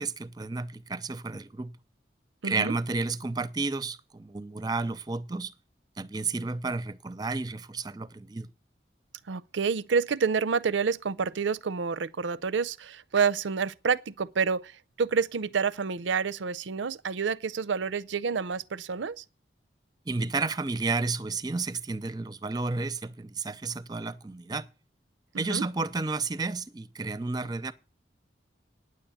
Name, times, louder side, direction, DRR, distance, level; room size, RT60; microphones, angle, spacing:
voice 1, 0.0-1.7 2.4-5.5 6.0-8.5 20.1-24.7 25.4-27.7, right 3 dB, 20° right, 0.6 m, -31 dB
voice 2, 2.4-2.8 9.3-19.2 25.3-25.7, right 5 dB, 85° right, 0.6 m, -28 dB
9.7 x 7.9 x 8.7 m
head